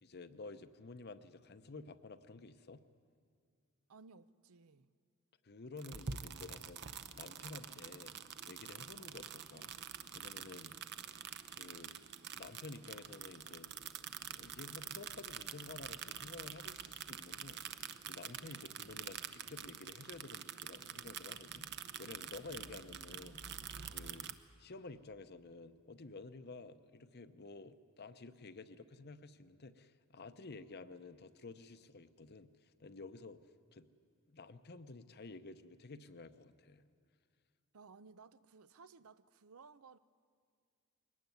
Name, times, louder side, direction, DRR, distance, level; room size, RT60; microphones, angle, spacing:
voice 1, 0.0-2.8 5.4-8.2 8.5-9.7 10.1-10.7 11.5-12.0 12.3-13.7 14.2-23.6 23.9-24.3 24.6-33.4 33.7-33.9 34.3-36.8, left 3 dB, 50° left, 0.8 m, -52 dB
voice 2, 3.9-4.9 37.7-40.0, right 4 dB, 90° right, 0.7 m, -58 dB
sound 1, 5.8-24.3, right 8 dB, 55° right, 0.8 m, -47 dB
22.0 x 18.5 x 9.4 m
head